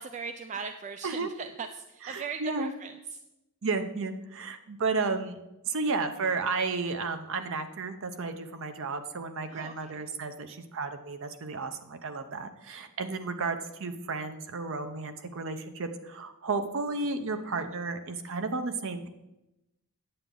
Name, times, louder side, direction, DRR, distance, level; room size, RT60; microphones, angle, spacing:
voice 1, 0.0-3.2 9.5-10.0, right 5 dB, 30° right, 8 dB, 0.3 m, -39 dB
voice 2, 2.1-2.7 3.6-5.4 5.7-19.1, right 4 dB, 60° right, 8 dB, 0.8 m, -33 dB
9.0 x 8.1 x 3.8 m, 0.93 s
head